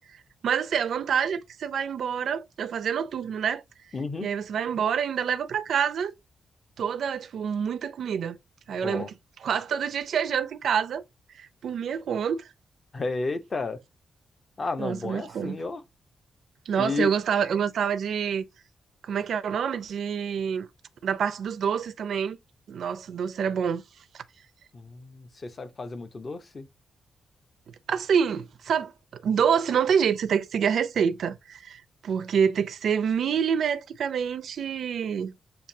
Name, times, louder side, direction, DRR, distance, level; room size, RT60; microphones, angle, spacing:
voice 1, 0.0-3.6 4.2-6.1 6.8-8.4 8.7-9.1 9.4-11.0 11.3-12.5 14.8-15.6 16.7-18.5 19.0-20.7 21.0-22.4 22.7-23.8 24.1-24.2 27.9-35.3, right 7 dB, 70° right, 0.4 m, -27 dB
voice 2, 3.9-4.3 8.8-9.1 12.9-13.8 14.6-15.8 16.8-17.1 24.7-26.7, left 3 dB, 35° left, 0.6 m, -32 dB
7.0 x 2.6 x 2.6 m
wide cardioid pair, 140°, 0 cm